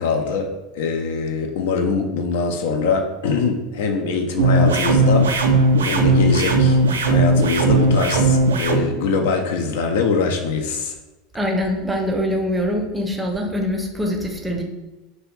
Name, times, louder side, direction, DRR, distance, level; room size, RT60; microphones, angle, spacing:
voice 1, 0.0-5.6 5.8-6.8 7.0-10.9, left 4 dB, 60° left, 4 dB, 0.3 m, -23 dB
sound 1, 4.4-8.8, right 2 dB, 70° right, 0.3 m, -17 dB
voice 2, 11.3-14.6, equal, 10° right, 1 dB, 0.5 m, -23 dB
2.5 x 2.3 x 3.1 m, 1.1 s
figure-of-eight pair, 75°, 0 cm